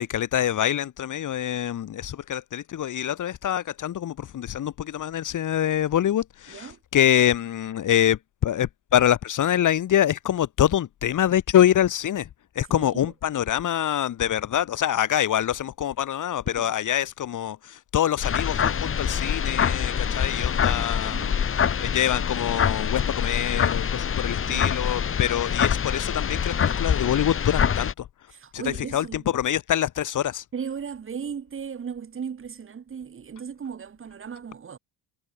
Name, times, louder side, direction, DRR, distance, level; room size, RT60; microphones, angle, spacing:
voice 1, 0.0-12.3 12.5-21.3 21.8-28.1 28.5-30.4, left 11 dB, 45° left, 3.2 m, -25 dB
voice 2, 6.5-6.8 12.7-13.1 16.5-16.7 20.6-21.4 24.4-24.7 28.3-29.2 30.5-34.8, right 7 dB, 30° right, 4.5 m, -36 dB
sound 1, 18.2-27.9, left 7 dB, 30° left, 2.1 m, -25 dB
cardioid pair, 160°, 41 cm